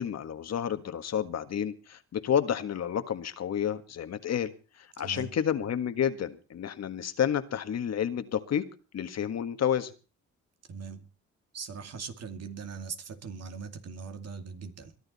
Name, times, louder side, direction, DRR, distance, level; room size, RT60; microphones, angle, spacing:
voice 1, 0.0-4.5 4.8-8.6 8.9-9.9, left 9 dB, 60° left, 1.7 m, -30 dB
voice 2, 5.0-5.4 10.7-11.1 11.5-14.9, right 5 dB, 55° right, 2.5 m, -40 dB
22.0 x 11.5 x 4.2 m
cardioid pair, 90°, 30 cm